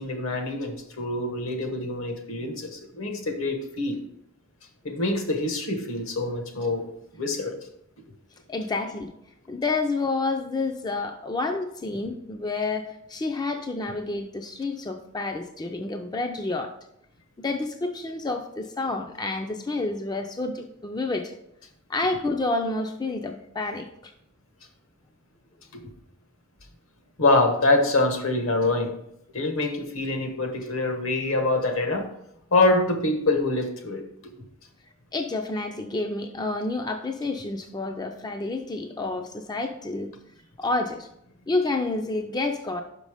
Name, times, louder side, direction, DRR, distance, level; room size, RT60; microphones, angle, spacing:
voice 1, 0.0-4.0 4.8-6.8 7.1-7.6 27.2-28.9 29.3-32.1 32.5-34.0, left 2 dB, 70° left, 5 dB, 1.2 m, -25 dB
voice 2, 8.5-9.1 9.5-16.7 17.4-21.4 21.9-24.1 35.1-40.1 40.6-41.1 41.5-42.8, left 3 dB, 20° left, 5 dB, 0.4 m, -29 dB
5.9 x 5.2 x 4.9 m, 0.76 s
head